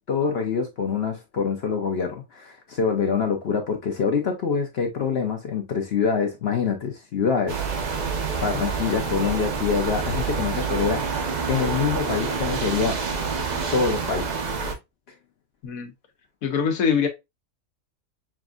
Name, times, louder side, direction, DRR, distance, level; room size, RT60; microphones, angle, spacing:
voice 1, 0.1-7.6 8.4-11.1 11.5-13.0 13.7-14.4, left 6 dB, 55° left, 0.8 m, -25 dB
sound 1, 7.5-14.7, right 5 dB, 45° right, 0.6 m, -27 dB
voice 2, 16.4-17.1, left 6 dB, 90° left, 1.3 m, -23 dB
6.0 x 2.6 x 2.4 m
omnidirectional pair, 1.4 m